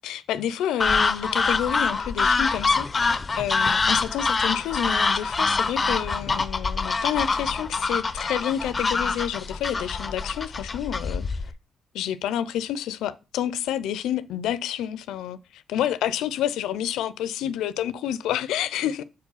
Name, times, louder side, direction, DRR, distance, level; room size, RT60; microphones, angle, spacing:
voice 1, 0.0-11.3 11.9-19.0, left 10 dB, 85° left, 0.4 m, -29 dB
sound 1, 0.8-11.5, left 4 dB, 30° left, 0.5 m, -25 dB
4.8 x 4.5 x 5.4 m
cardioid pair, 90°, 0 cm